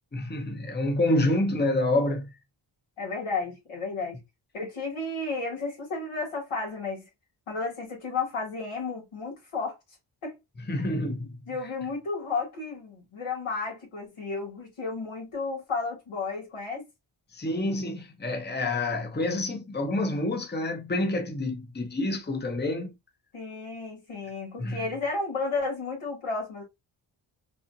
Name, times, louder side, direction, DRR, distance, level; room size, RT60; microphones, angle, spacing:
voice 1, 0.1-2.3 10.7-11.4 17.3-22.9 24.6-24.8, left 1 dB, 20° left, 0.9 m, -28 dB
voice 2, 3.0-4.2 4.5-7.1 7.5-9.7 10.2-10.3 10.8-10.9 11.5-16.8 23.3-26.6, left 4 dB, 85° left, 2.3 m, -32 dB
4.2 x 2.5 x 2.5 m
cardioid pair, 60°, 49 cm